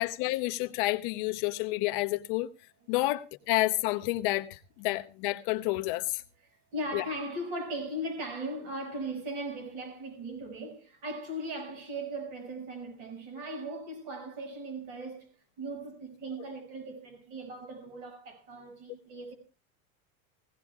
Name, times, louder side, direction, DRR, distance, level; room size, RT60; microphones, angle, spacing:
voice 1, 0.0-2.5 2.9-6.2 6.9-7.0, left 19 dB, 45° left, 0.7 m, -29 dB
voice 2, 6.5-15.3 15.6-19.3, right 1 dB, 50° right, 6.4 m, -38 dB
20.5 x 16.5 x 2.4 m
supercardioid pair, 165°, 36 cm